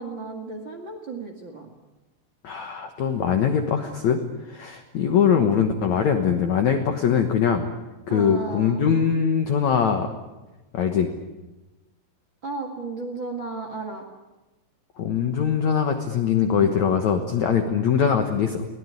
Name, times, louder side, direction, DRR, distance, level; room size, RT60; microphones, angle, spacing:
voice 1, 0.0-1.7 8.1-8.9 12.4-14.0, right 3 dB, 40° right, 3 dB, 1.8 m, -34 dB
voice 2, 2.4-4.2 4.5-7.7 8.1-10.1 10.7-11.1 15.0-18.7, left 7 dB, 70° left, 6 dB, 1.8 m, -22 dB
23.0 x 17.5 x 9.6 m, 1.1 s
omnidirectional pair, 5.2 m